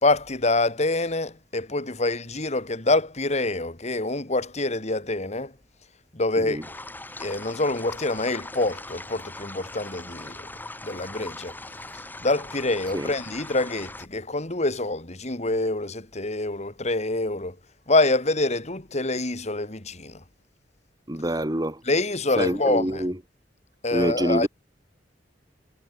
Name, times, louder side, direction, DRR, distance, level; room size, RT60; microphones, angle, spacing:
voice 1, 0.0-5.5 6.1-6.8 7.2-10.5 10.8-11.6 11.9-17.6 17.9-20.2 21.8-23.0 23.8-24.5, left 2 dB, 40° left, 2.7 m, -26 dB
sound 1, 6.6-14.1, left 2 dB, 10° left, 5.6 m, -40 dB
voice 2, 21.1-21.8 22.4-23.2 23.9-24.5, right 1 dB, 20° right, 2.7 m, -26 dB
head